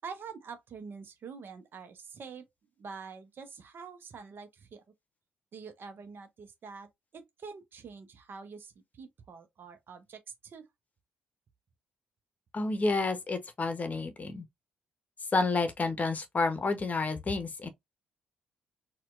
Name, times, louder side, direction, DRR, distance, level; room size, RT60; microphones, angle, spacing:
voice 1, 0.0-2.5 2.8-4.8 5.5-10.7, right 5 dB, 50° right, 0.7 m, -46 dB
voice 2, 12.5-14.5 15.3-17.7, left 3 dB, 35° left, 0.8 m, -30 dB
4.2 x 2.2 x 2.4 m
figure-of-eight pair, 40°, 5 cm